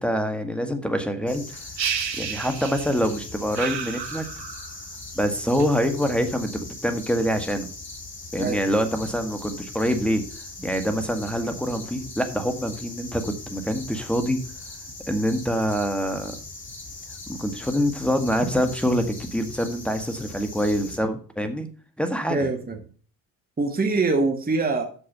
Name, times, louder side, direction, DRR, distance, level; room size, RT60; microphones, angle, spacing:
voice 1, 0.0-1.4 2.2-4.3 5.1-7.7 8.3-10.2 10.6-14.4 15.1-16.3 17.3-21.7 22.0-22.5, equal, ahead, 5 dB, 1.8 m, -25 dB
sound 1, 1.3-21.0, left 3 dB, 25° left, 3.8 m, -40 dB
sound 2, 1.8-3.1 3.5-4.8, right 8 dB, 85° right, 1.1 m, -31 dB
voice 2, 22.3-22.8 23.6-24.8, right 3 dB, 20° right, 3 dB, 1.7 m, -23 dB
13.0 x 4.5 x 5.6 m, 0.42 s
figure-of-eight pair, 45°, 49 cm